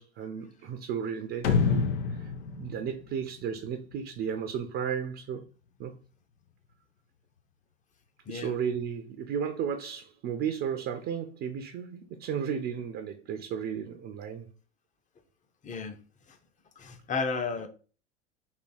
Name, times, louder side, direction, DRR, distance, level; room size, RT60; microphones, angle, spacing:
voice 1, 0.0-2.3 2.6-5.4 5.8-5.9 8.3-14.5, right 7 dB, 35° right, 0.6 m, -34 dB
sound 1, 1.4-4.0, left 5 dB, 80° left, 0.6 m, -28 dB
voice 2, 15.6-16.0 16.3-16.4 16.8-17.7, left 4 dB, 20° left, 0.7 m, -33 dB
3.6 x 2.7 x 4.2 m
hypercardioid pair, 80°, 35 cm